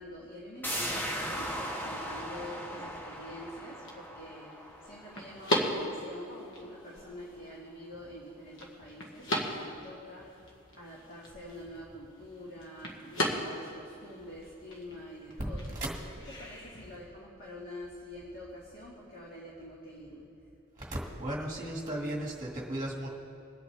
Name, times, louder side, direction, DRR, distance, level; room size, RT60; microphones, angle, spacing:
voice 1, 0.0-15.6 16.4-20.3, left 1 dB, 45° left, -6 dB, 2.1 m, -46 dB
sound 1, 0.6-6.1 6.5-6.6, equal, 10° left, 0.9 m, -38 dB
sound 2, 1.6-17.0, equal, 60° left, 1.7 m, -39 dB
voice 2, 20.8-23.1, right 1 dB, 20° right, -2 dB, 1.9 m, -35 dB
23.5 x 8.4 x 3.5 m, 2.8 s
head